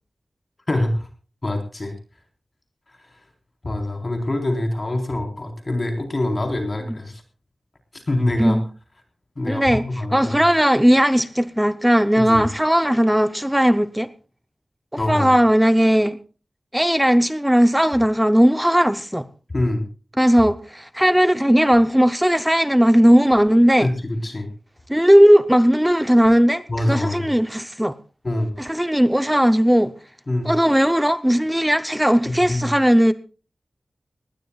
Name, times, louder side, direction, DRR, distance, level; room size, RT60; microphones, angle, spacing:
voice 1, 0.7-1.1 1.4-1.9 3.0-3.1 3.6-7.2 7.9-8.6 9.4-10.4 12.2-12.5 15.0-15.3 19.5-19.8 23.8-24.5 26.7-27.2 28.2-28.5 30.3-30.5 32.3-32.7, left 1 dB, 40° left, 4.0 m, -24 dB
voice 2, 9.5-14.1 14.9-16.2 16.7-19.3 20.2-23.9 24.9-27.9 28.6-29.9 30.4-33.1, equal, 5° right, 0.6 m, -17 dB
20.0 x 19.5 x 2.4 m
wide cardioid pair, 90°, 0 cm